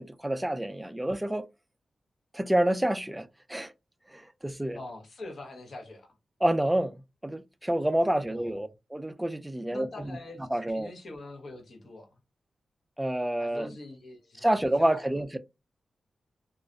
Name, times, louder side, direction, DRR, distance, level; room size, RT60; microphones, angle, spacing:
voice 1, 0.0-1.5 2.3-3.7 4.1-4.8 6.4-7.0 7.2-9.9 10.5-10.9 13.0-13.7 14.4-15.4, right 1 dB, 10° right, 0.3 m, -28 dB
voice 2, 4.7-6.2 8.3-8.6 9.7-12.2 13.4-15.1, left 2 dB, 60° left, 0.8 m, -44 dB
2.3 x 2.1 x 2.5 m
cardioid pair, 80°, 0 cm